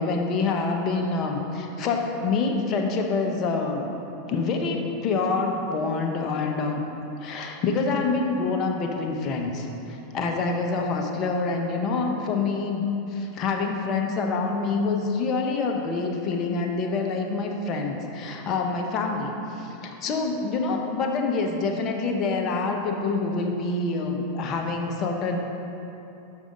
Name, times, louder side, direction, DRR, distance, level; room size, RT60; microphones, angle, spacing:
voice 1, 0.0-3.9 4.3-6.8 7.2-25.4, left 4 dB, 40° left, 2 dB, 0.9 m, -26 dB
6.4 x 5.4 x 5.1 m, 2.9 s
hypercardioid pair, 100°, 0 cm